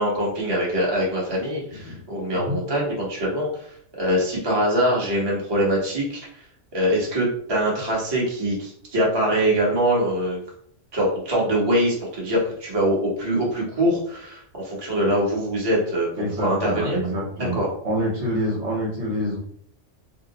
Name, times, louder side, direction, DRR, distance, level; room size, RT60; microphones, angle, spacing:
voice 1, 0.0-6.2 6.7-10.4 10.9-16.1 16.4-17.0 17.4-17.7, equal, 20° right, -4 dB, 0.9 m, -23 dB
voice 2, 16.2-19.4, equal, 60° right, -3 dB, 1.1 m, -27 dB
2.7 x 2.0 x 3.8 m, 0.63 s
omnidirectional pair, 1.4 m